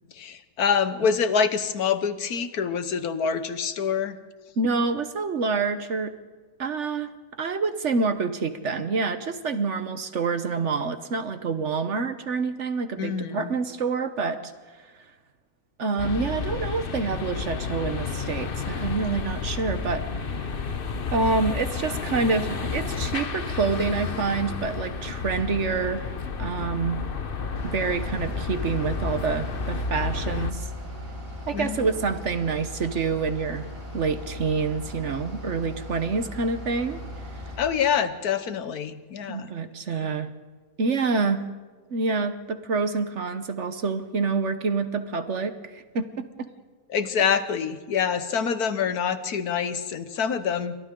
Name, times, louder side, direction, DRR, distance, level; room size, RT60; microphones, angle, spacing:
voice 1, 0.1-4.2 13.0-13.5 31.5-31.9 37.6-39.5 46.9-50.8, left 7 dB, 85° left, 11 dB, 1.6 m, -26 dB
voice 2, 4.6-6.1 6.6-7.1 7.4-14.5 15.8-20.5 21.1-26.1 26.4-27.0 27.6-30.7 31.5-33.7 33.9-37.0 39.3-40.3 40.8-41.4 41.9-46.0 46.4-46.5, right 4 dB, 55° right, 10 dB, 1.3 m, -27 dB
sound 1, 16.0-30.5, left 5 dB, 40° left, 1.1 m, -31 dB
Bus / Idling, 27.6-37.6, left 2 dB, 40° right, 7.0 m, -39 dB
28.5 x 24.5 x 3.8 m, 1.4 s
omnidirectional pair, 1.6 m